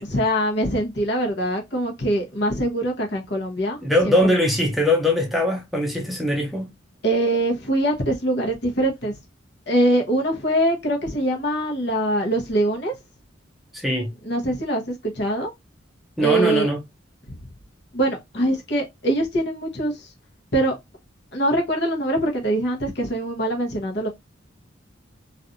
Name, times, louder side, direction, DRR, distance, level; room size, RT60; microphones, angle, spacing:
voice 1, 0.0-3.8 4.0-4.1 7.0-9.2 9.7-12.9 14.2-14.8 15.2-15.5 16.2-16.7 17.3-17.4 17.9-20.1 20.5-20.7 21.3-24.1, right 1 dB, 60° left, 1.1 m, -23 dB
voice 2, 3.8-6.7 13.7-14.1 16.2-16.8, left 1 dB, ahead, 0.6 m, -21 dB
3.1 x 2.6 x 2.5 m
head